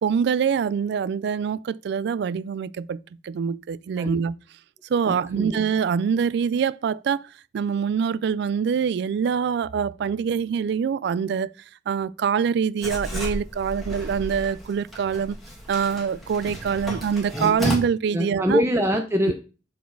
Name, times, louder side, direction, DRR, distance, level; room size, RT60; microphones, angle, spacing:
voice 1, 0.0-3.0 3.2-4.4 4.9-7.2 7.5-11.5 11.9-15.4 15.7-18.6, right 7 dB, 65° right, 0.3 m, -24 dB
voice 2, 5.0-5.5 18.1-19.3, equal, 15° right, 0.5 m, -23 dB
Writing, 12.8-17.7, equal, ahead, 1.8 m, -32 dB
7.0 x 4.1 x 4.6 m
head